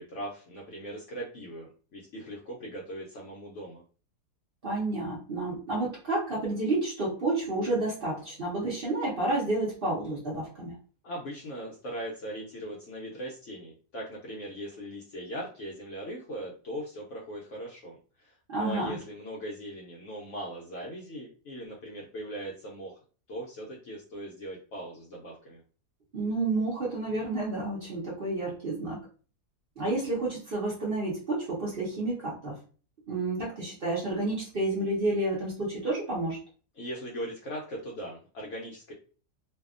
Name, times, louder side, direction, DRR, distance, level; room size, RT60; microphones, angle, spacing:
voice 1, 0.0-3.8 11.0-23.0 23.3-25.6 36.8-38.9, right 1 dB, 65° left, -2 dB, 0.8 m, -39 dB
voice 2, 4.6-10.8 18.5-19.0 26.1-29.0 29.8-32.6 33.1-36.4, right 2 dB, 45° right, -5 dB, 0.8 m, -30 dB
2.7 x 2.3 x 2.4 m, 0.39 s
omnidirectional pair, 1.7 m